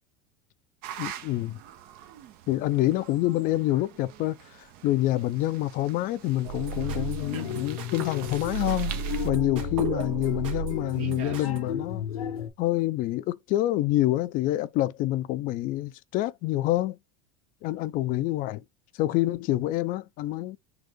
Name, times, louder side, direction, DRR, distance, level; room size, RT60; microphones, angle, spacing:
sound 1, 0.8-9.3, right 10 dB, 55° right, 0.7 m, -45 dB
voice 1, 1.0-1.6 2.5-9.0 9.2-12.1 12.6-17.0 17.6-18.6 18.9-20.6, left 15 dB, 50° left, 0.5 m, -27 dB
sound 2, 6.4-11.6, right 7 dB, 75° right, 1.5 m, -34 dB
Mbira Excerpt, 6.7-12.5, left 7 dB, 80° left, 1.0 m, -34 dB
4.0 x 2.5 x 3.6 m
hypercardioid pair, 90°, 18 cm